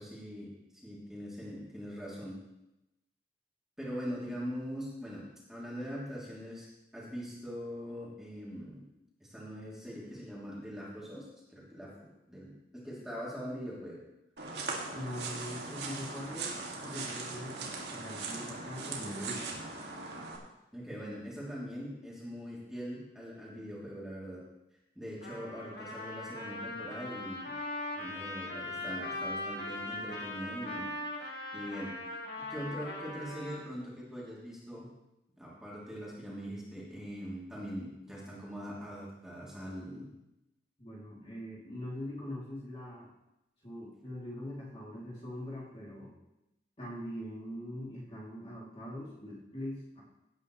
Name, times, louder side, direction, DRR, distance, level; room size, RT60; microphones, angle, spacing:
voice 1, 0.0-2.4 3.8-5.2 5.5-6.7 6.9-8.8 9.2-14.0 20.7-24.4 24.9-27.5 27.9-30.9 31.2-32.0 32.4-34.9 35.4-40.1, equal, 5° right, -7 dB, 3.0 m, -42 dB
sound 1, 14.4-20.4, right 3 dB, 75° right, 2.1 m, -40 dB
voice 2, 14.9-16.5 16.8-19.7 40.8-43.1 43.6-46.1 46.8-50.0, left 1 dB, 30° left, -5 dB, 2.8 m, -42 dB
Trumpet, 25.2-33.6, left 1 dB, 60° left, 2.3 m, -40 dB
17.0 x 9.5 x 3.2 m, 0.92 s
head